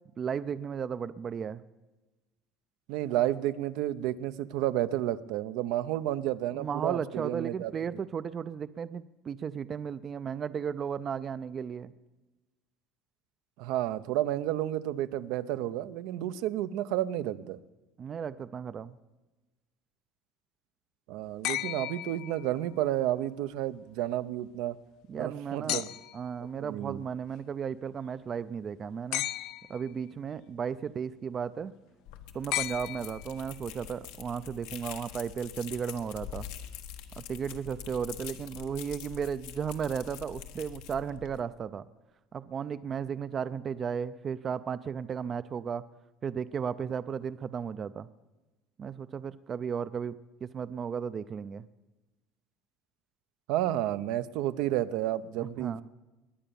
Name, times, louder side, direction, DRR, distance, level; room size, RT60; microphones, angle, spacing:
voice 1, 0.2-1.6 6.5-11.9 18.0-19.0 25.1-25.8 26.1-29.2 29.7-31.7 32.3-36.5 37.2-41.9 42.3-45.8 46.2-48.1 48.8-51.7 55.4-55.8, right 7 dB, 30° right, 14 dB, 0.4 m, -35 dB
voice 2, 2.9-7.7 13.6-17.6 21.1-24.8 25.1-25.9 26.6-27.0 53.5-55.8, right 13 dB, 75° right, 12 dB, 0.7 m, -31 dB
sound 1, 21.4-22.8 25.7-26.3 29.1-29.9 32.5-33.6 35.1-35.2, left 15 dB, 60° left, 0.5 m, -35 dB
sound 2, 32.1-41.4, left 10 dB, 85° left, 1.4 m, -45 dB
21.0 x 9.0 x 7.0 m, 1.1 s
cardioid pair, 145°, 0 cm